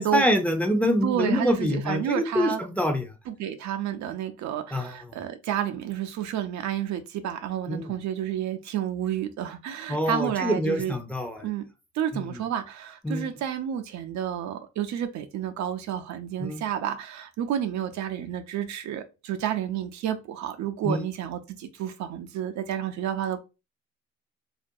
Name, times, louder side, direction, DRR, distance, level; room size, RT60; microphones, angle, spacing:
voice 1, 0.0-3.1 4.7-5.0 7.7-7.8 9.9-11.5 12.1-12.4 13.0-13.3 16.4-16.6 20.8-21.0, equal, 5° left, 0.5 m, -26 dB
voice 2, 1.0-2.6 3.3-10.9 11.4-11.6 11.9-23.4, right 10 dB, 70° right, 0.5 m, -30 dB
2.4 x 2.2 x 2.6 m
cardioid pair, 70°, 29 cm